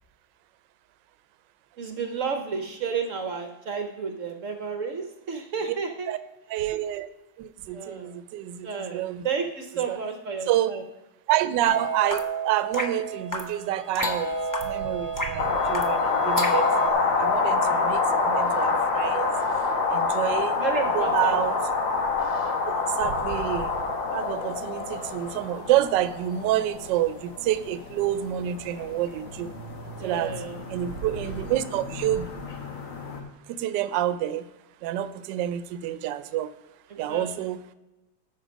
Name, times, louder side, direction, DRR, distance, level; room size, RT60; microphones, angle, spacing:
voice 1, 1.8-6.1 7.7-8.2 8.6-10.8 17.4-17.9 20.1-21.5 30.0-30.6 36.9-37.5, right 5 dB, 55° right, 5 dB, 0.9 m, -32 dB
voice 2, 6.5-7.1 7.4-9.2 9.9-10.0 10.5-10.7 11.3-14.3 14.6-16.9 17.2-19.3 19.9-20.6 20.9-21.6 23.0-23.7 24.1-29.5 30.0-30.3 30.7-32.3 33.5-34.4 34.8-36.5 37.0-37.6, right 12 dB, 75° right, 13 dB, 1.2 m, -28 dB
sound 1, 11.6-16.9, right 1 dB, 30° left, 0.3 m, -30 dB
sound 2, 15.4-33.2, left 4 dB, 85° left, 2.0 m, -27 dB
13.0 x 5.1 x 5.1 m, 1.0 s
omnidirectional pair, 2.0 m